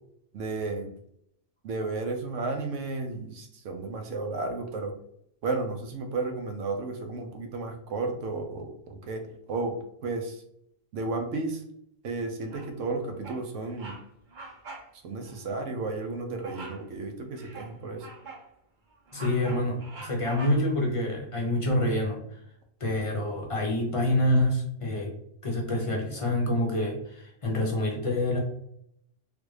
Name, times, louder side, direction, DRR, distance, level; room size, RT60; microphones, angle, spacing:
voice 1, 0.3-0.9 1.6-4.9 5.4-9.2 9.5-9.8 10.0-10.4 10.9-11.6 12.0-13.9 15.0-18.1, right 3 dB, 75° right, 4 dB, 1.0 m, -33 dB
Bird vocalization bird call bird song, 12.5-12.9 13.2-13.5 13.7-14.0 14.3-14.9 15.2-15.4 16.4-16.9 17.3-18.5 18.9-20.8, right 3 dB, 45° right, 0.7 m, -44 dB
voice 2, 19.1-22.2 22.8-25.1 25.4-28.4, left 1 dB, 35° left, -1 dB, 0.5 m, -27 dB
3.4 x 2.5 x 3.1 m, 0.71 s
omnidirectional pair, 1.3 m